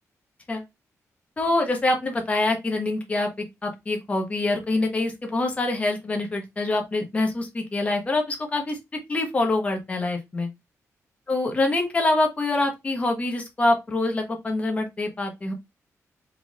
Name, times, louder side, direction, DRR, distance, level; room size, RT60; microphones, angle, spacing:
voice 1, 1.4-8.8 9.1-10.5 11.3-15.5, left 2 dB, 25° left, 1.1 m, -25 dB
4.5 x 3.7 x 2.5 m
wide cardioid pair, 180°, 6 cm